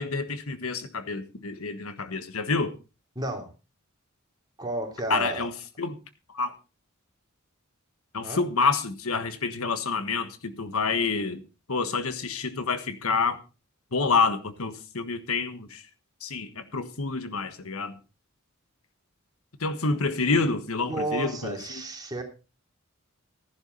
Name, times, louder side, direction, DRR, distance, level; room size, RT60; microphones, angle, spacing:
voice 1, 0.0-2.7 5.1-5.5 5.8-5.9 6.3-6.5 8.1-11.4 11.7-13.4 13.9-15.8 16.2-17.9 19.6-21.8, left 4 dB, 80° left, 1.4 m, -28 dB
voice 2, 3.1-3.5 4.6-5.5 8.2-8.4 20.8-22.2, right 2 dB, 20° right, 3.3 m, -32 dB
14.5 x 11.0 x 4.0 m
head